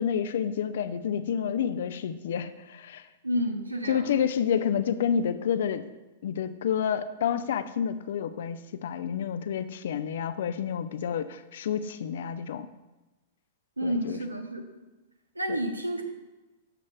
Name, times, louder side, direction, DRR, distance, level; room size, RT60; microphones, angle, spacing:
voice 1, 0.0-3.1 3.9-5.8 6.2-12.7 13.8-14.2, left 8 dB, 55° left, 12 dB, 0.4 m, -29 dB
voice 2, 3.2-4.1 13.8-14.6 15.4-16.0, equal, 80° right, 5 dB, 0.9 m, -30 dB
12.5 x 7.2 x 2.3 m, 1.1 s
figure-of-eight pair, 100°, 0 cm